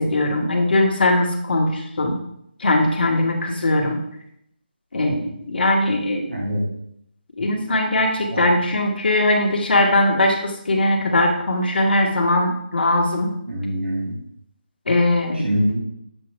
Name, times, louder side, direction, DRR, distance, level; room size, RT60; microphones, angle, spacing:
voice 1, 0.0-2.2 2.6-4.0 4.9-6.2 7.4-13.3 14.9-15.5, left 1 dB, 65° left, 1 dB, 1.6 m, -20 dB
voice 2, 6.3-6.6 8.3-8.4 13.5-14.2 15.4-15.8, equal, 85° right, -2 dB, 2.8 m, -24 dB
7.7 x 4.9 x 3.4 m, 0.75 s
figure-of-eight pair, 160°, 6 cm